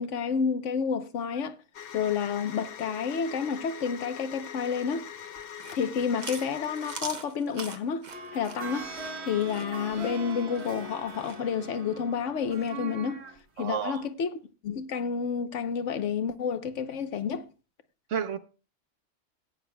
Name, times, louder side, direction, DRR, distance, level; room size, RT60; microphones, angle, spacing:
voice 1, 0.0-1.5 1.9-5.1 5.8-8.1 8.3-8.9 9.3-13.2 13.6-17.5, left 6 dB, 80° left, 1.2 m, -30 dB
sound 1, 1.7-7.0, left 8 dB, 55° left, 0.8 m, -43 dB
Chewing mastication, 5.4-11.4, right 4 dB, 40° right, 1.0 m, -42 dB
sound 2, 8.1-13.4 13.9-14.0, right 3 dB, 60° right, 1.5 m, -41 dB
voice 2, 13.6-14.0 18.1-18.4, right 8 dB, 80° right, 1.2 m, -31 dB
17.0 x 9.1 x 2.2 m
omnidirectional pair, 1.3 m